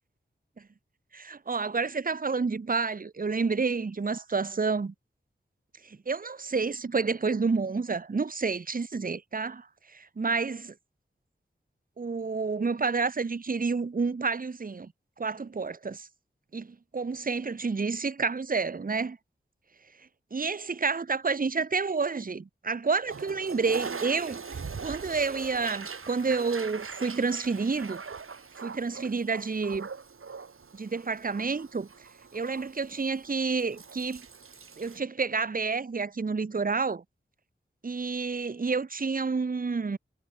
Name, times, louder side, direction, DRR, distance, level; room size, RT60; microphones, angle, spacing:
voice 1, 1.1-4.9 5.8-10.7 12.0-14.9 15.2-16.1 16.5-19.2 20.3-28.0 28.6-29.9 30.7-31.9 32.3-34.2 34.8-37.0 37.8-40.0, right 4 dB, 45° right, 1.0 m, -29 dB
Toilet flush, 23.0-35.0, right 5 dB, 90° right, 3.6 m, -41 dB
wide cardioid pair, 85°, 21 cm